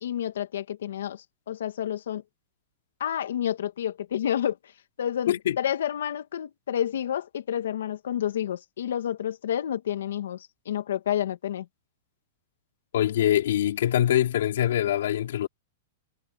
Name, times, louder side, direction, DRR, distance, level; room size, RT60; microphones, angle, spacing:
voice 1, 0.0-2.2 3.0-4.6 5.0-11.7, left 10 dB, 85° left, 2.4 m, -29 dB
voice 2, 5.3-5.6 12.9-15.5, left 11 dB, 70° left, 3.4 m, -24 dB
supercardioid pair, 170°, 0 cm